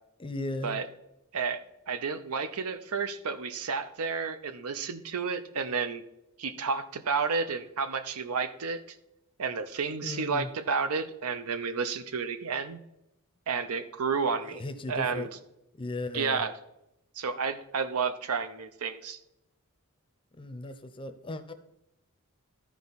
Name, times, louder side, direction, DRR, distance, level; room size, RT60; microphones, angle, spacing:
voice 1, 0.2-0.8 10.0-10.5 14.4-15.3 15.8-16.4 20.4-21.5, left 2 dB, 25° left, 10 dB, 0.6 m, -36 dB
voice 2, 1.3-6.0 6.4-8.8 9.4-12.8 13.5-14.6 14.9-15.3 16.1-16.5 17.2-19.2, right 5 dB, 75° right, 11 dB, 0.6 m, -31 dB
13.0 x 4.7 x 4.0 m, 0.87 s
head